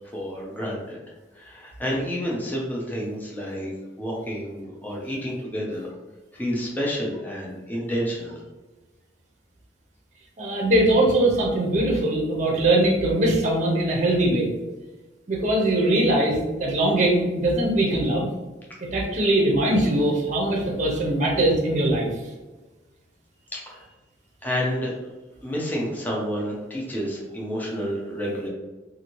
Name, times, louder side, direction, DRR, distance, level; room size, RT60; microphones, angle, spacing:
voice 1, 0.1-1.0 1.3-3.7 4.0-5.9 6.3-8.4 23.5-23.8 24.4-24.9 25.4-28.5, equal, 10° left, -4 dB, 0.6 m, -29 dB
voice 2, 10.4-14.5 15.3-18.3 18.8-22.1, right 1 dB, 40° right, -2 dB, 0.7 m, -21 dB
2.7 x 2.6 x 3.0 m, 1.2 s
head